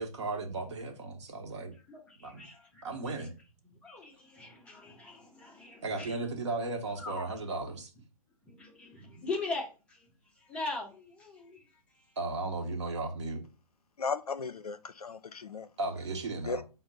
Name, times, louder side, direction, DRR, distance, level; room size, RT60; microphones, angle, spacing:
voice 1, 0.0-1.7 2.2-2.4 2.8-3.3 5.8-7.9 12.2-13.4 15.8-16.6, right 3 dB, 50° right, 0.9 m, -35 dB
voice 2, 1.9-3.3 3.8-6.2 7.0-7.7 8.4-10.1 10.4-12.2, left 3 dB, 5° left, 0.4 m, -41 dB
voice 3, 14.0-15.7 16.5-16.6, left 4 dB, 80° left, 0.4 m, -36 dB
5.0 x 2.0 x 3.8 m
figure-of-eight pair, 125°, 19 cm